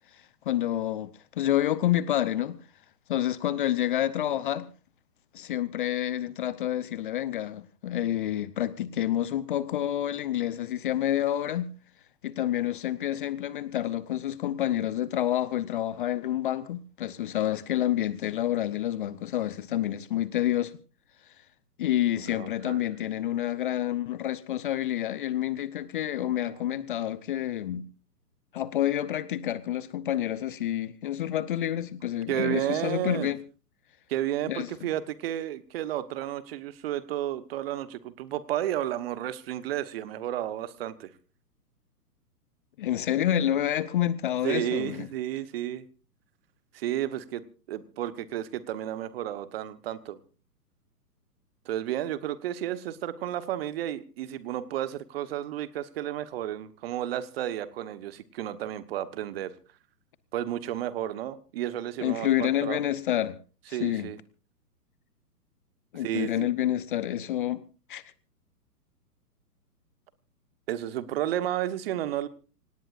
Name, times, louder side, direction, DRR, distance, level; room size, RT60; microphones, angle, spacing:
voice 1, 0.5-1.1 1.4-2.6 3.1-4.7 5.3-11.7 12.2-20.8 21.8-27.9 28.5-33.4 34.5-34.7 42.8-45.1 62.0-63.4 63.7-64.1 65.9-67.6 67.9-68.0, left 12 dB, 35° left, 0.7 m, -28 dB
voice 2, 22.3-22.8 26.2-26.8 32.3-33.3 34.1-41.1 44.4-45.9 46.7-50.2 51.6-59.5 60.3-62.8 63.7-64.2 66.0-66.5 70.7-72.3, right 12 dB, 40° right, 1.3 m, -32 dB
26.5 x 18.0 x 2.5 m
figure-of-eight pair, 125°, 48 cm